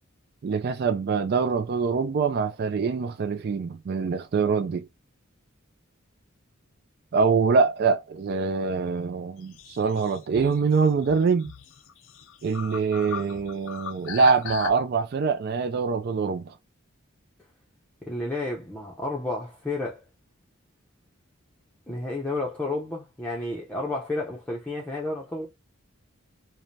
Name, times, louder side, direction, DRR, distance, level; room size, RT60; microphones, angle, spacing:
voice 1, 0.4-4.9 7.1-11.5 12.4-16.5, right 5 dB, 50° right, 0.3 m, -24 dB
sound 1, 9.4-14.7, left 7 dB, 65° left, 0.5 m, -39 dB
voice 2, 18.1-20.0 21.9-25.5, left 2 dB, 5° left, 0.6 m, -31 dB
4.8 x 2.2 x 2.6 m
head